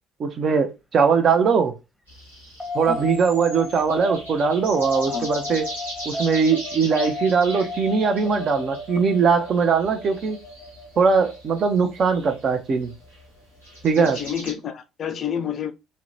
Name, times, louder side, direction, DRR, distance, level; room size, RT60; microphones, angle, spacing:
voice 1, 0.2-1.7 2.7-5.6 6.0-10.4 11.0-12.9 13.8-14.2, right 5 dB, 45° right, 0.5 m, -20 dB
sound 1, 2.1-14.5, right 1 dB, 90° right, 1.1 m, -40 dB
sound 2, 2.6-13.4, left 3 dB, ahead, 0.8 m, -35 dB
voice 2, 14.0-15.7, left 8 dB, 45° left, 0.3 m, -28 dB
2.7 x 2.1 x 2.6 m
figure-of-eight pair, 50°, 0 cm